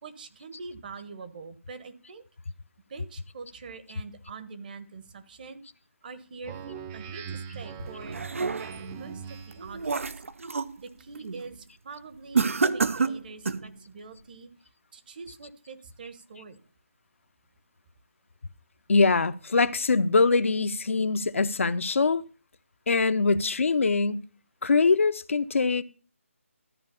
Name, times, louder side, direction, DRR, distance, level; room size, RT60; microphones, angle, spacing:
voice 1, 0.0-2.2 2.9-5.6 6.0-8.2 8.9-10.2 10.8-14.5 14.9-16.6, right 4 dB, 40° right, 1.2 m, -44 dB
Speech synthesizer, 6.4-9.8, right 7 dB, 15° right, 0.5 m, -41 dB
sound 1, 7.8-8.9 9.4-10.8 11.2-11.5 12.3-13.7, right 4 dB, 70° right, 0.6 m, -28 dB
voice 2, 18.9-22.2 22.9-24.2 24.6-25.8, left 4 dB, 65° left, 0.7 m, -23 dB
13.0 x 4.7 x 6.9 m
figure-of-eight pair, 160°, 8 cm